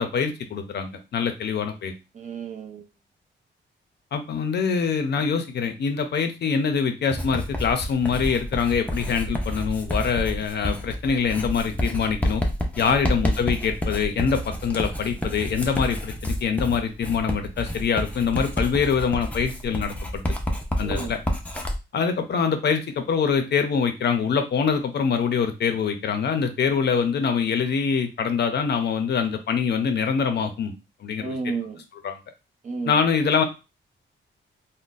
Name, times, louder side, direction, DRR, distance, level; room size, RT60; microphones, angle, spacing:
voice 1, 0.0-1.9 4.1-12.4 12.8-20.2 20.8-21.2 21.9-30.7 31.0-31.4 31.9-32.2 32.8-33.4, left 6 dB, 60° left, 7 dB, 0.5 m, -24 dB
voice 2, 2.1-2.8 12.9-13.1 20.8-21.1 31.2-31.8 32.6-33.0, right 4 dB, 40° right, 3 dB, 0.6 m, -32 dB
Writing, 7.1-21.8, equal, 5° left, 0.5 m, -29 dB
3.8 x 2.1 x 2.5 m, 0.27 s
wide cardioid pair, 150°, 20 cm